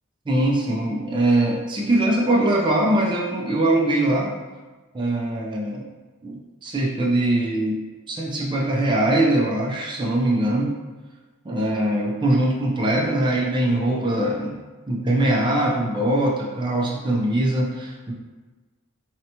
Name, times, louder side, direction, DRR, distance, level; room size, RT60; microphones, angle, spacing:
voice 1, 0.3-4.3 4.9-5.9 6.2-7.8 8.1-10.7 11.4-14.6 14.9-18.1, right 1 dB, 20° right, -2 dB, 0.4 m, -22 dB
2.8 x 2.1 x 2.7 m, 1.3 s
head